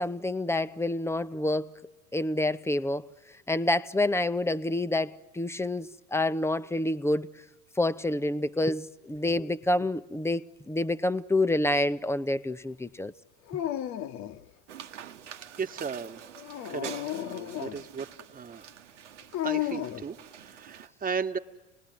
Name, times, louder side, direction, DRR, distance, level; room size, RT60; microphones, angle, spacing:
voice 1, 0.0-1.7 2.1-3.0 3.5-7.3 7.8-13.1, left 1 dB, 5° left, 14 dB, 0.8 m, -28 dB
Dog, 13.5-14.5 16.4-17.8 19.3-20.1, left 12 dB, 50° left, 1.2 m, -33 dB
sound 1, 14.7-20.9, right 9 dB, 80° right, 1.2 m, -46 dB
voice 2, 15.6-16.2 16.7-16.9 17.2-18.7 19.4-21.4, right 6 dB, 25° right, 7 dB, 1.6 m, -35 dB
28.5 x 20.0 x 9.6 m, 1.2 s
hypercardioid pair, 75°, 35 cm